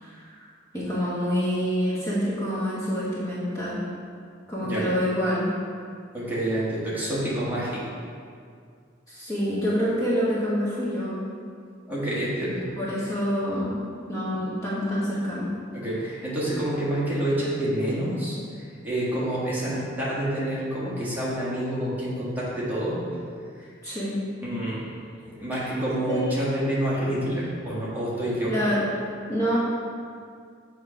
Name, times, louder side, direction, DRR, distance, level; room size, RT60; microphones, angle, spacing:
voice 1, 0.0-0.4 0.7-3.8 4.5-5.5 9.1-11.2 12.8-13.8 14.1-15.5 23.8-24.2 26.1-26.3 28.4-28.8 29.3-29.6, equal, 15° left, -9 dB, 1.2 m, -27 dB
voice 2, 6.1-7.9 11.9-12.7 15.7-18.4 18.8-23.0 23.6-23.7 24.4-24.9 25.2-28.6, right 1 dB, 10° right, -9 dB, 1.4 m, -28 dB
7.9 x 3.2 x 5.0 m, 2.2 s
head